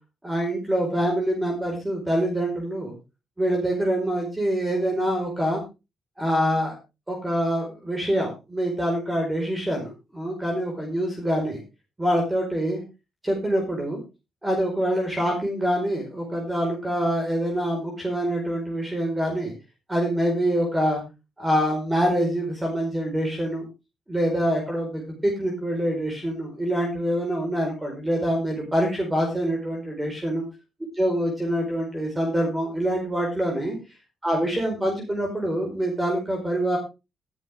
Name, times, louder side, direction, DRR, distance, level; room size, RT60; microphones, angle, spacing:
voice 1, 0.2-2.9 3.4-5.6 6.2-6.7 7.1-11.6 12.0-12.8 13.2-14.0 14.4-19.5 19.9-21.0 21.4-23.6 24.1-30.4 30.9-33.8 34.2-36.8, equal, 15° right, 1 dB, 4.9 m, -25 dB
13.5 x 11.0 x 3.6 m, 0.28 s
cardioid pair, 90°, 0 cm